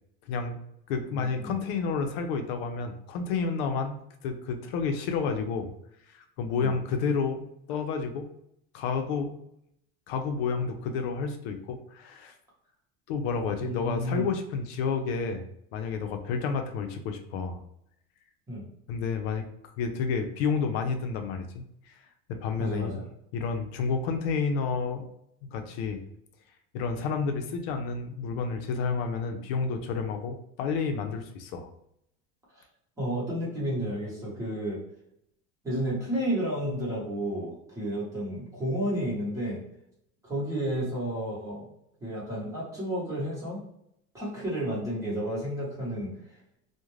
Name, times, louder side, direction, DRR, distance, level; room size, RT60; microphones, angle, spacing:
voice 1, 0.3-0.6 0.9-5.7 6.1-7.4 7.7-8.3 8.7-9.4 10.1-12.3 13.1-15.4 15.7-17.6 18.9-21.9 22.3-23.0 23.3-25.1 25.5-26.0 26.7-31.7, left 5 dB, 80° left, 6 dB, 0.5 m, -30 dB
voice 2, 13.6-14.3 18.5-18.6 22.6-23.0 32.5-32.6 33.0-34.8 35.6-39.6 40.2-41.7 42.0-43.6 44.1-46.1, equal, 10° right, -7 dB, 1.0 m, -31 dB
2.4 x 2.1 x 3.1 m, 0.76 s
cardioid pair, 170°, 30 cm